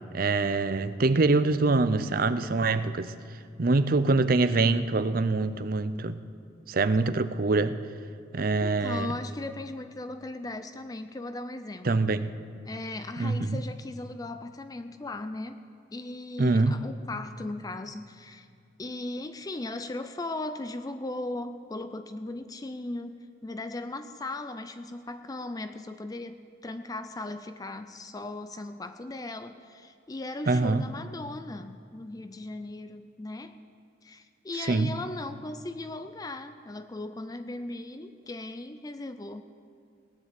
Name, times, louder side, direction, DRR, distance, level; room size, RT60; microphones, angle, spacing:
voice 1, 0.1-3.1 3.6-6.2 6.7-7.8 8.3-9.1 11.8-12.3 13.2-13.6 16.4-16.8 30.5-30.8 34.7-34.9, right 3 dB, 50° right, 12 dB, 0.6 m, -24 dB
voice 2, 8.6-12.1 12.6-15.6 15.9-18.5 18.8-33.6 34.0-39.4, left 2 dB, 20° left, 10 dB, 0.4 m, -38 dB
18.0 x 9.8 x 7.6 m, 2.5 s
head